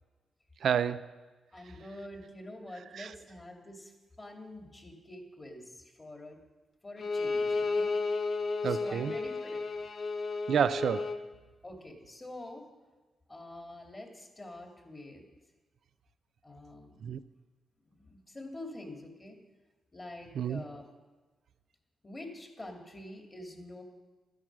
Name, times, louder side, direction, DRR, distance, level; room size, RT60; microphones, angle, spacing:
voice 1, 0.6-1.1 2.9-3.1 8.6-9.1 10.5-11.2 17.0-17.2 20.3-20.6, right 8 dB, 70° right, 12 dB, 0.4 m, -30 dB
voice 2, 1.5-3.9 4.2-6.4 6.8-7.9 8.6-9.6 11.6-12.6 13.3-15.2 16.4-17.0 17.9-19.4 19.9-20.8 22.0-23.8, left 1 dB, 25° left, 2 dB, 2.5 m, -46 dB
Bowed string instrument, 7.0-11.2, left 3 dB, 55° left, 0.9 m, -32 dB
13.0 x 8.9 x 6.2 m, 1.2 s
cardioid pair, 80°, 0 cm